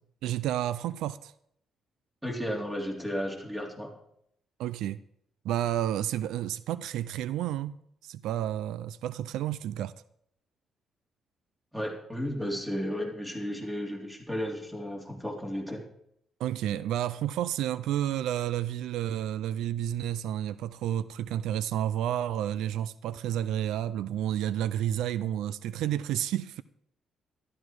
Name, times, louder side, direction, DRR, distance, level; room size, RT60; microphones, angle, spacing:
voice 1, 0.2-1.3 4.6-5.0 5.4-9.9 16.4-26.6, right 11 dB, 85° right, 0.4 m, -30 dB
voice 2, 2.2-3.9 11.7-15.8, equal, 10° right, 3.6 m, -33 dB
13.0 x 12.5 x 4.6 m
cardioid pair, 90°, 0 cm